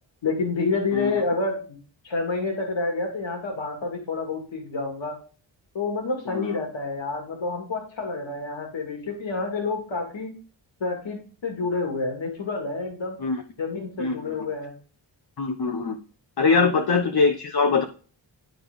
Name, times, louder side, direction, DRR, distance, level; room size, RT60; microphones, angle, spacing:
voice 1, 0.2-1.8 2.0-5.2 5.7-10.3 10.8-13.2 13.6-14.7 16.5-16.8, left 3 dB, 75° left, 2 dB, 2.1 m, -28 dB
voice 2, 6.3-6.6 13.2-13.4 14.0-14.5 15.4-16.0 16.4-17.8, left 4 dB, 55° left, 4 dB, 0.9 m, -23 dB
11.5 x 4.4 x 3.6 m, 0.38 s
wide cardioid pair, 90°, 46 cm